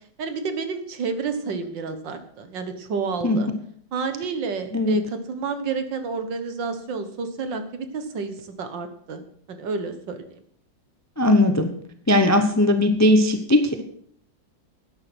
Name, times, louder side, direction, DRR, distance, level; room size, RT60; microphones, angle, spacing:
voice 1, 0.2-3.5 3.9-9.2 9.5-10.4, right 4 dB, 75° right, 8 dB, 2.0 m, -30 dB
voice 2, 11.2-11.7 12.1-13.8, left 1 dB, 15° left, 7 dB, 0.5 m, -18 dB
11.5 x 9.4 x 6.2 m, 0.64 s
omnidirectional pair, 2.0 m